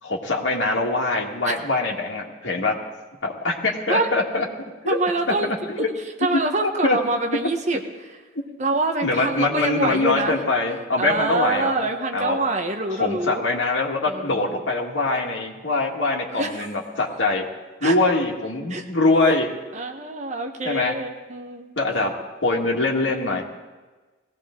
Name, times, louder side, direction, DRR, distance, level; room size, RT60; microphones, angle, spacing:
voice 1, 0.0-2.8 3.2-4.5 4.8-5.0 5.4-5.9 6.6-7.0 8.3-8.4 9.0-11.9 12.1-12.4 13.0-17.5 17.8-19.5 20.7-21.0 21.8-22.1 22.4-23.5, left 2 dB, 80° left, 0 dB, 1.9 m, -23 dB
voice 2, 4.9-5.5 6.2-8.1 8.6-10.4 11.0-13.4 14.1-14.6 16.3-16.7 17.8-18.0 18.7-18.8 19.7-21.7, right 2 dB, 40° right, 4 dB, 1.2 m, -25 dB
20.0 x 16.5 x 3.8 m, 1.3 s
head